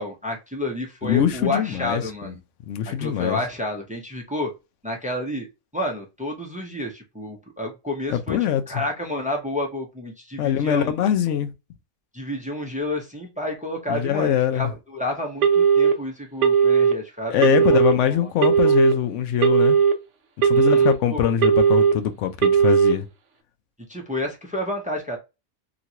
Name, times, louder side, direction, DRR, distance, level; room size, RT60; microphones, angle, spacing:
voice 1, 0.0-2.4 3.0-4.5 4.8-5.5 5.7-11.0 12.1-17.8 18.1-18.2 18.6-18.8 20.5-21.3 23.9-25.2, left 1 dB, 10° right, 0.5 m, -30 dB
voice 2, 1.0-2.3 2.7-3.4 8.1-8.8 10.4-11.5 13.9-14.7 17.3-19.8 20.4-23.1, left 10 dB, 65° left, 0.8 m, -23 dB
Telephone, 15.4-15.9 16.4-16.9 17.4-17.9 18.4-18.9 19.4-19.9 20.4-20.9 21.4-21.9 22.4-22.9, right 7 dB, 65° right, 0.9 m, -17 dB
2.9 x 2.5 x 2.8 m
omnidirectional pair, 1.5 m